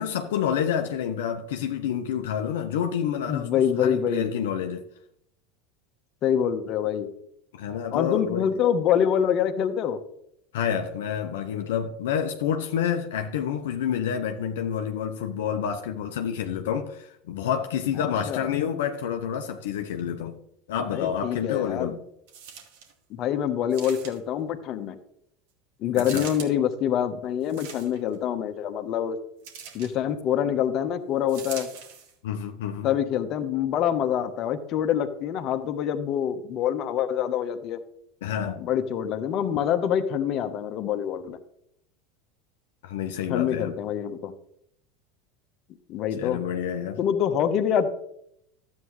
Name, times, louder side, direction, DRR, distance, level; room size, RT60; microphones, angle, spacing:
voice 1, 0.0-3.5 3.8-4.8 7.5-8.5 10.5-20.4 20.7-22.0 25.9-26.3 32.2-32.9 38.2-38.6 42.8-43.7 46.1-47.0, left 8 dB, 75° left, 0.8 m, -28 dB
voice 2, 3.3-4.3 6.2-7.1 7.9-10.0 18.3-18.5 20.8-21.9 23.1-25.0 25.8-29.2 29.7-31.7 32.8-37.8 38.6-41.4 43.3-44.3 45.9-46.4 47.0-47.9, left 9 dB, 50° left, 1.2 m, -25 dB
sound 1, 22.3-22.9 23.7-24.4 25.9-26.5 27.4-28.1 29.4-29.9 31.3-32.1 32.8-32.9, right 7 dB, 70° right, 2.2 m, -41 dB
12.5 x 8.5 x 3.2 m
hypercardioid pair, 85°, 0 cm